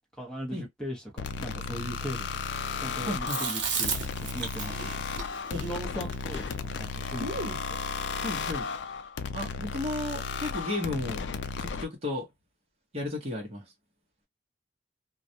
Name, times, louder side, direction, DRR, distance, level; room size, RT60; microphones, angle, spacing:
voice 1, 0.2-2.3 2.8-5.0 5.3-7.3 7.7-7.8, equal, 5° left, 0.9 m, -39 dB
sound 1, 1.2-11.9, left 5 dB, 65° left, 0.3 m, -34 dB
voice 2, 3.1-3.4 5.5-5.6 8.2-8.7 9.3-11.2 11.6-12.3 12.9-13.6, left 1 dB, 35° right, 0.8 m, -33 dB
Chewing mastication, 3.3-7.7, right 5 dB, 65° right, 0.9 m, -35 dB
2.3 x 2.1 x 2.6 m
head